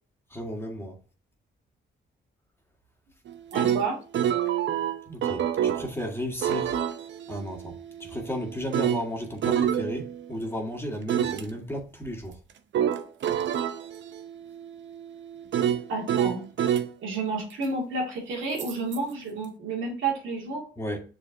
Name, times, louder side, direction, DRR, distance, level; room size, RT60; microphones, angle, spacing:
voice 1, 0.3-0.9 5.1-6.8 7.3-12.4 20.8-21.0, equal, 10° left, 1.9 m, -34 dB
sound 1, 3.3-5.9 6.4-10.5 11.1-11.4 12.7-16.9 18.6-19.0, right 9 dB, 70° right, 0.7 m, -28 dB
voice 2, 3.5-4.0 15.9-16.5 17.0-20.7, right 3 dB, 85° right, 2.5 m, -30 dB
6.7 x 4.9 x 2.9 m
cardioid pair, 75°, 20 cm